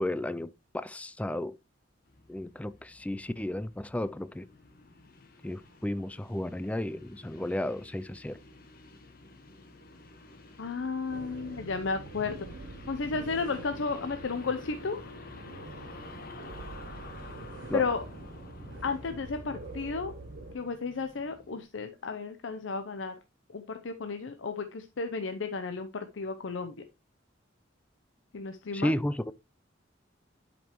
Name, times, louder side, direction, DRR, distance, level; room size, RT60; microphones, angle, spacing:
voice 1, 0.0-1.6 2.3-4.5 5.4-8.4 17.7-17.8 28.7-29.3, left 1 dB, 5° left, 0.3 m, -33 dB
sound 1, 2.0-21.6, left 2 dB, 50° left, 1.2 m, -49 dB
voice 2, 10.6-12.5 12.9-15.0 17.7-18.0 18.8-20.1 20.5-23.2 23.5-26.7 28.3-29.0, left 4 dB, 80° left, 0.6 m, -33 dB
sound 2, 11.1-20.6, right 3 dB, 85° right, 0.7 m, -46 dB
10.5 x 5.2 x 3.0 m
head